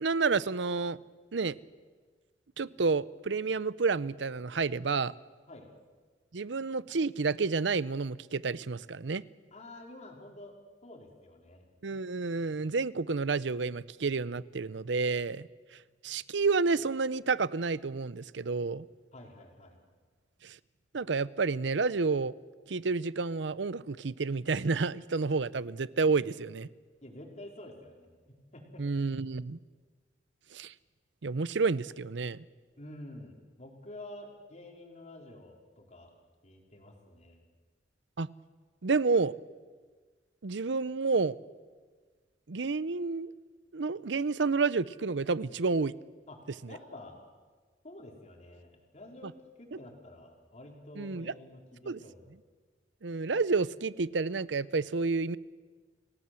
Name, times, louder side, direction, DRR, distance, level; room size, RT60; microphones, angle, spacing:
voice 1, 0.0-1.0 1.3-1.6 2.6-5.1 6.3-9.2 11.8-15.5 16.0-18.9 20.4-20.6 20.9-22.3 22.7-26.7 28.8-29.6 30.5-30.7 31.2-32.4 38.2-38.3 38.8-39.3 40.4-41.4 42.5-43.3 43.7-45.9 46.6-46.8 49.2-49.3 51.0-51.3 51.9-52.0 53.0-55.4, right 4 dB, 70° right, 18 dB, 0.7 m, -30 dB
voice 2, 9.5-10.5 10.8-11.6 19.1-19.8 27.0-28.9 32.8-36.1 36.4-37.4 46.3-46.4 46.7-47.2 47.8-52.2, left 1 dB, 40° left, 1 dB, 4.4 m, -49 dB
29.5 x 18.5 x 7.6 m, 1.4 s
head